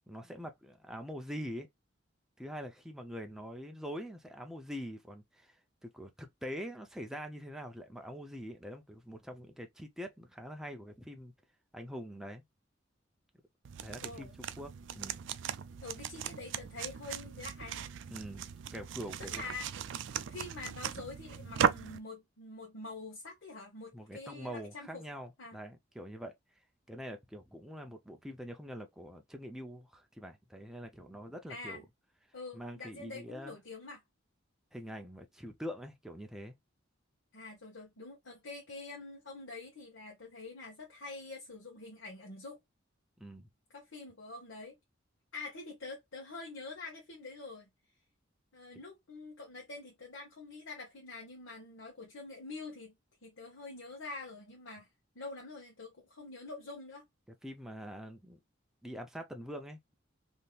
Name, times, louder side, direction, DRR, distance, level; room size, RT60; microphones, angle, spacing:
voice 1, 0.1-1.7 2.4-5.6 5.8-11.3 11.7-12.4 13.8-14.3 14.6-15.3 18.1-19.3 23.9-26.3 26.9-31.8 32.5-33.6 34.7-36.6 43.2-43.5 57.4-58.4 58.8-59.8, equal, 5° right, 0.5 m, -44 dB
sound 1, 13.7-22.0, right 8 dB, 70° right, 0.4 m, -37 dB
voice 2, 14.0-14.3 15.8-17.9 19.2-19.7 20.3-25.0 25.4-25.6 31.5-31.8 32.3-34.0 37.3-42.6 43.7-44.8 45.3-47.7 48.5-52.9 53.2-54.9 55.1-57.0, left 3 dB, 85° left, 1.1 m, -46 dB
3.5 x 2.8 x 2.4 m
head